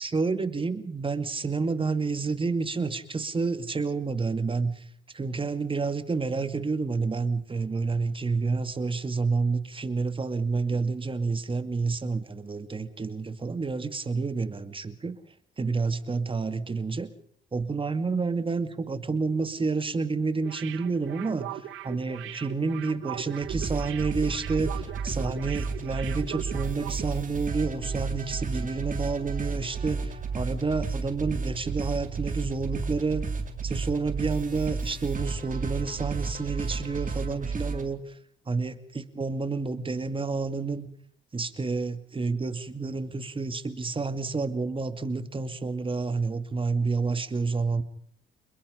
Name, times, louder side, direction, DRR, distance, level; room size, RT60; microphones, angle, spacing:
voice 1, 0.0-4.8 5.1-15.2 15.6-17.1 17.5-33.2 33.6-38.2 38.5-40.9 41.3-47.8, right 4 dB, 25° right, 10 dB, 2.3 m, -29 dB
sound 1, 20.4-27.1 27.4-27.5, right 13 dB, 85° right, 1.5 m, -40 dB
sound 2, 23.4-37.9, right 4 dB, 40° right, 4.0 m, -32 dB
28.0 x 21.5 x 5.2 m, 0.65 s
cardioid pair, 90°, 20 cm